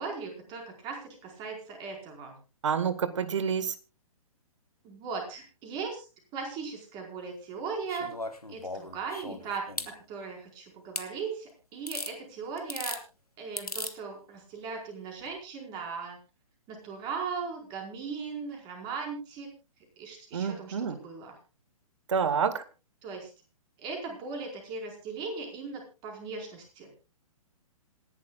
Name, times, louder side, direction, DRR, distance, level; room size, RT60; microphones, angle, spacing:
voice 1, 0.0-2.4 4.8-6.0 6.3-8.2 8.5-9.7 10.1-13.0 13.4-16.2 16.7-19.5 20.0-21.4 23.0-23.3 23.8-27.0, right 5 dB, 25° right, 2 dB, 4.8 m, -38 dB
voice 2, 2.6-3.7 20.3-21.0 22.1-22.6, right 6 dB, 55° right, 15 dB, 1.6 m, -28 dB
sound 1, 7.9-9.9 11.0-11.1 11.9-12.1 12.6-13.0 13.6-13.9 15.2-15.3, left 2 dB, 90° left, 1.5 m, -37 dB
27.0 x 11.0 x 2.4 m, 0.31 s
figure-of-eight pair, 125°, 19 cm